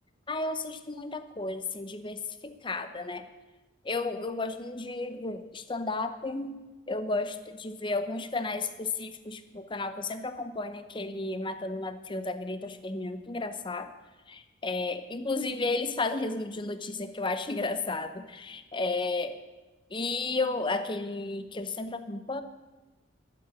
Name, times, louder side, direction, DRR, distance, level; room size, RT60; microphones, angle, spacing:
voice 1, 0.3-3.2 3.8-6.6 6.9-13.9 14.3-19.4 19.9-22.4, left 3 dB, 25° left, 10 dB, 0.7 m, -33 dB
12.5 x 7.7 x 9.5 m, 1.2 s
head